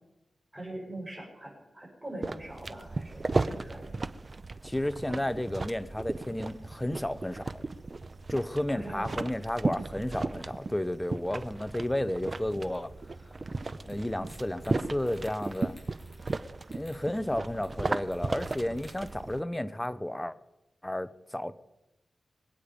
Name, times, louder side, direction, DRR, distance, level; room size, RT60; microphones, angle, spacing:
voice 1, 0.5-3.9 8.7-9.2, right 1 dB, 15° right, -2 dB, 7.1 m, -42 dB
sound 1, 2.2-19.4, right 3 dB, 35° right, 0.7 m, -36 dB
voice 2, 4.6-7.6 8.3-12.9 13.8-15.8 16.7-20.4 20.8-21.5, left 1 dB, 10° left, 13 dB, 0.8 m, -32 dB
sound 2, 13.9-14.0 14.3-14.7 15.0-16.4 16.6-17.0 17.6-17.7 18.1-19.1, left 2 dB, 30° left, 7.1 m, -56 dB
25.0 x 8.8 x 5.2 m, 0.98 s
wide cardioid pair, 115°, 0 cm